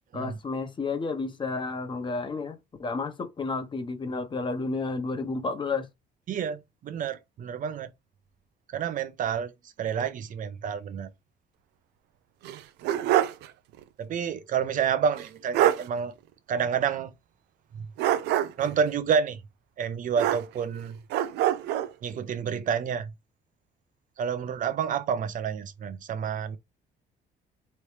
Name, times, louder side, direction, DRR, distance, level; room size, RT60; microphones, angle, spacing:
voice 1, 0.1-5.9, left 3 dB, 30° left, 1.0 m, -31 dB
voice 2, 6.3-7.9 8.7-9.5 9.8-11.1 14.0-16.1 16.5-17.1 18.6-19.4 19.8-21.0 22.0-23.1 24.2-26.6, right 7 dB, 50° right, 0.8 m, -29 dB
sound 1, 12.4-13.5 13.8-13.9 15.2-15.3 15.5-15.9 18.0-18.7 20.2-20.8 21.1-21.9, right 12 dB, 80° right, 0.6 m, -25 dB
4.2 x 3.3 x 3.3 m
cardioid pair, 110°, 17 cm